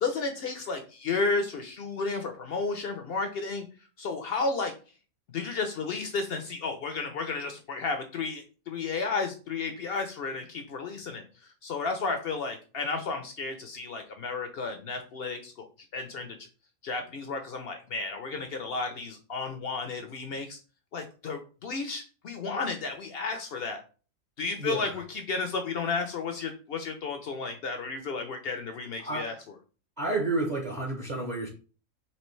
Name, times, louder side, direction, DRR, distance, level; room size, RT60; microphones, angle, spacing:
voice 1, 0.0-3.7 4.0-4.7 5.3-15.6 15.9-16.4 16.8-20.6 20.9-23.8 24.4-29.3, left 4 dB, 60° left, 6 dB, 0.6 m, -32 dB
voice 2, 24.6-25.0 29.0-29.3 30.0-31.5, right 2 dB, 40° right, 0 dB, 0.7 m, -30 dB
4.3 x 2.9 x 3.1 m, 0.36 s
omnidirectional pair, 1.5 m